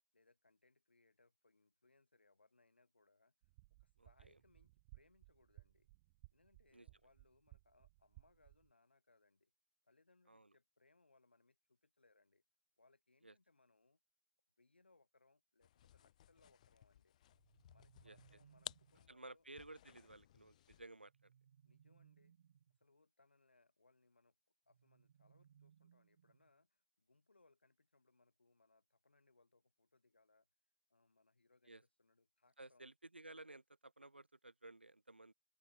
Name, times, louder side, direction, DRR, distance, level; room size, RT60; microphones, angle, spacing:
voice 1, 0.1-3.3 3.8-5.9 6.3-9.5 9.8-12.4 12.8-14.0 14.6-17.2 17.7-19.5 21.6-22.4 22.8-24.4 24.7-30.5 30.9-32.9, left 3 dB, 80° left, 7.5 m, -74 dB
sound 1, 3.4-8.7, right 22 dB, 30° right, 1.4 m, -64 dB
sound 2, 15.6-21.0, left 12 dB, 40° left, 0.4 m, -57 dB
sound 3, 17.3-19.1 21.0-22.8 24.7-26.6, right 8 dB, 55° right, 2.2 m, -69 dB
voice 2, 19.1-21.3 31.7-31.8 32.6-35.3, right 2 dB, 85° right, 1.3 m, -56 dB
open air
figure-of-eight pair, 130°, 6 cm